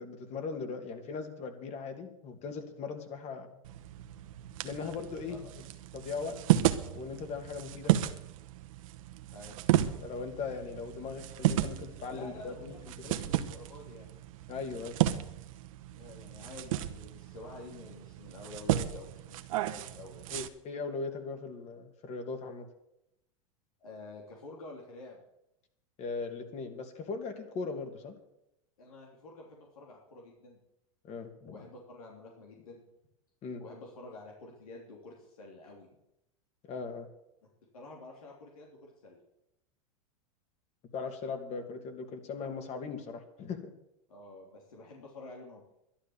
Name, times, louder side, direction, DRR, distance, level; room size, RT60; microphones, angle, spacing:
voice 1, 0.0-3.5 4.6-5.5 5.9-6.4 6.9-7.9 10.0-13.1 14.5-15.0 20.3-22.7 26.0-28.2 31.0-31.6 33.4-33.6 36.6-37.1 40.9-43.7, left 4 dB, 40° left, 6 dB, 2.5 m, -39 dB
sound 1, 3.6-20.5, right 13 dB, 70° right, 1.1 m, -33 dB
voice 2, 12.1-14.1 15.9-20.2 23.8-25.2 28.8-30.6 31.5-32.8 33.6-35.9 37.7-39.2 44.1-45.6, left 2 dB, 90° left, -1 dB, 3.2 m, -49 dB
11.5 x 11.5 x 7.2 m, 0.84 s
hypercardioid pair, 115°, 18 cm